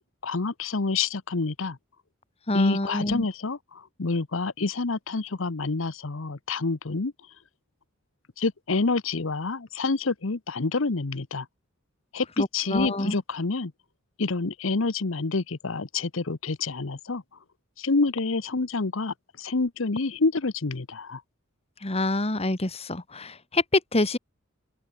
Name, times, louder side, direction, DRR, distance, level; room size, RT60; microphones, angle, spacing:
voice 1, 0.2-1.8 2.5-7.1 8.4-11.5 12.1-13.7 14.2-17.2 17.8-21.2, left 3 dB, 75° left, 1.0 m, -28 dB
voice 2, 2.5-3.2 12.4-13.2 21.8-24.2, left 2 dB, 30° left, 1.9 m, -26 dB
head